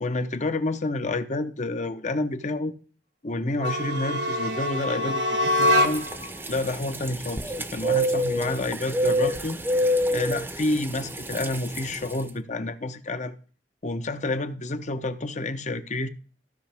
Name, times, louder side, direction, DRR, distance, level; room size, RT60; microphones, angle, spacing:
voice 1, 0.0-2.7 3.2-6.0 6.5-9.6 10.1-13.4 13.8-16.1, left 2 dB, 45° left, 0.8 m, -29 dB
sound 1, 3.5-6.3, left 1 dB, 75° right, 1.2 m, -24 dB
sound 2, 5.6-12.2, equal, 10° right, 0.7 m, -28 dB
15.5 x 5.8 x 3.4 m
head